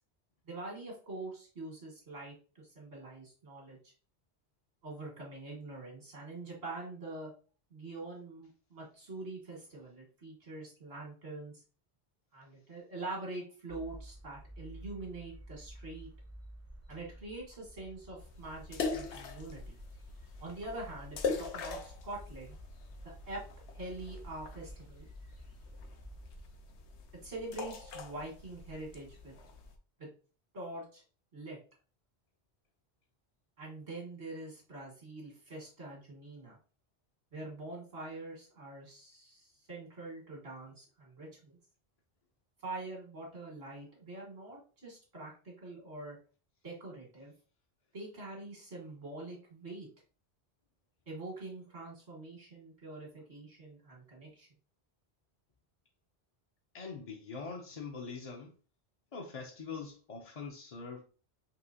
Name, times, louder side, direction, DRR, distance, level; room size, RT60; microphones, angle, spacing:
voice 1, 0.5-3.9 4.8-7.3 7.7-11.5 12.3-16.1 16.9-19.8 20.4-22.6 23.3-23.4 23.7-25.1 27.2-29.3 30.0-30.1 30.5-31.0 31.3-31.6 33.6-36.6 37.3-41.6 42.6-46.2 46.6-47.3 47.9-49.9 51.1-54.5, right 2 dB, 80° right, 2.0 m, -44 dB
sound 1, 13.7-26.6, equal, 20° right, 0.5 m, -52 dB
sound 2, 18.2-29.8, left 4 dB, 85° left, 1.0 m, -42 dB
voice 2, 56.7-58.5 59.1-61.0, left 5 dB, 40° left, 0.6 m, -43 dB
5.4 x 2.9 x 2.8 m
omnidirectional pair, 1.1 m